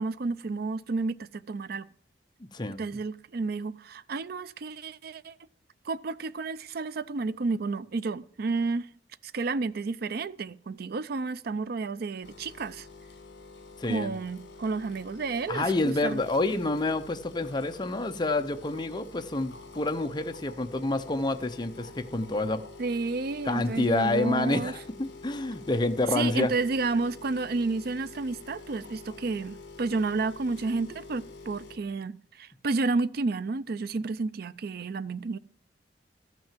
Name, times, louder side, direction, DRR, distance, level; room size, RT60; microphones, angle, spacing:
voice 1, 0.0-1.9 2.8-5.4 5.9-8.9 9.2-12.9 13.9-16.2 22.8-24.7 26.1-35.4, right 3 dB, 60° right, 0.5 m, -31 dB
voice 2, 2.4-2.8 13.8-14.1 15.5-22.6 23.5-26.5, left 2 dB, 25° left, 0.7 m, -28 dB
sound 1, 12.2-31.8, left 3 dB, 70° left, 1.7 m, -47 dB
13.0 x 6.1 x 7.3 m
head